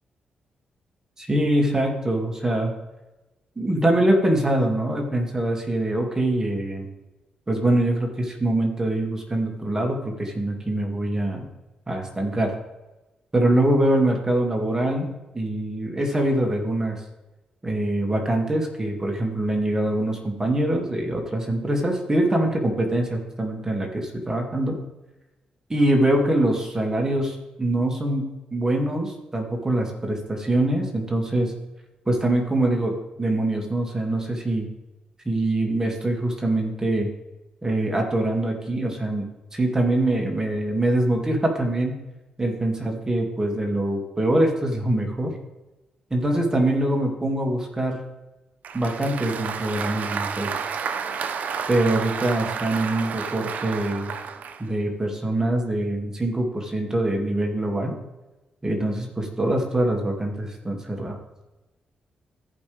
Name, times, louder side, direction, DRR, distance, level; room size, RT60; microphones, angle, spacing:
voice 1, 1.2-2.7 3.6-6.9 7.5-11.5 11.9-12.5 13.3-17.0 17.6-24.8 25.7-31.5 32.1-32.9 33.2-34.7 35.3-37.1 37.6-39.2 39.5-42.0 42.4-45.4 46.1-48.0 48.7-50.5 51.7-54.1 54.6-58.0 58.6-61.2, right 1 dB, 20° right, 1 dB, 2.3 m, -24 dB
Applause, 48.6-54.7, right 6 dB, 70° right, 0.7 m, -31 dB
14.5 x 5.5 x 3.5 m, 1.1 s
cardioid pair, 65°, 3 cm